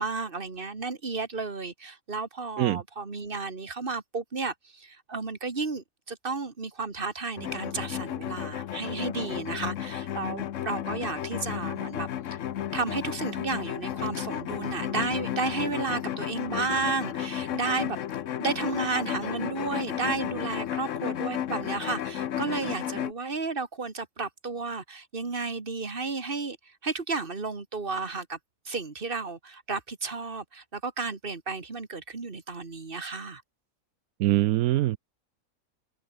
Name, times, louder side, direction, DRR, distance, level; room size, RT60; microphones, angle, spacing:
voice 1, 0.0-12.4 12.7-18.0 18.4-26.6 26.8-28.4 28.7-33.4, right 4 dB, 40° right, 2.3 m, -32 dB
sound 1, 7.4-23.1, left 10 dB, 65° left, 1.1 m, -33 dB
voice 2, 34.2-35.0, right 14 dB, 85° right, 1.1 m, -23 dB
omnidirectional pair, 1.5 m